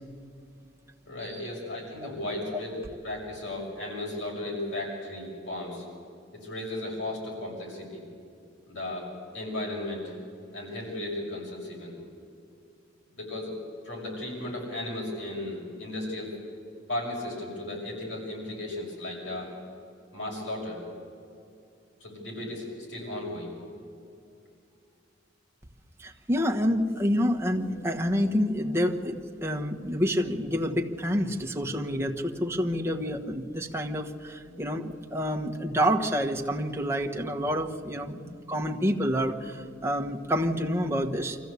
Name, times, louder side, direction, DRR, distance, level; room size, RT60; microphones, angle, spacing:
voice 1, 1.0-2.7 3.0-5.8 6.3-8.0 8.7-9.1 9.3-10.1 10.5-11.9 13.2-16.3 16.9-19.5 20.1-20.8 22.0-23.5 34.4-34.7 38.1-38.3, left 1 dB, 75° left, -2 dB, 6.4 m, -35 dB
voice 2, 26.0-41.4, equal, 15° right, 1 dB, 1.3 m, -28 dB
24.0 x 15.0 x 8.3 m, 2.5 s
head